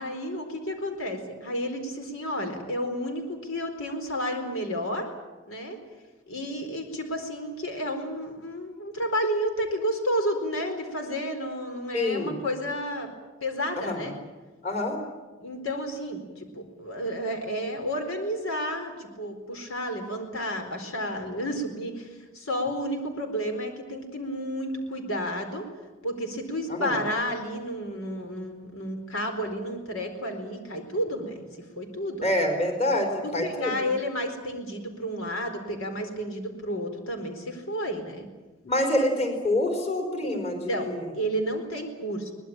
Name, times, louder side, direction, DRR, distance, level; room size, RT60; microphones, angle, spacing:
voice 1, 0.0-5.1 5.5-5.8 6.3-13.1 13.4-14.1 15.4-25.7 26.0-31.4 31.8-32.3 33.2-38.3 40.2-40.4 40.7-42.3, equal, 85° left, 5 dB, 4.4 m, -31 dB
voice 2, 11.9-12.4 13.8-14.1 14.6-15.0 26.7-27.0 32.2-33.9 38.6-41.1, left 1 dB, 30° left, 3 dB, 4.3 m, -26 dB
23.0 x 20.0 x 9.0 m, 1.2 s
head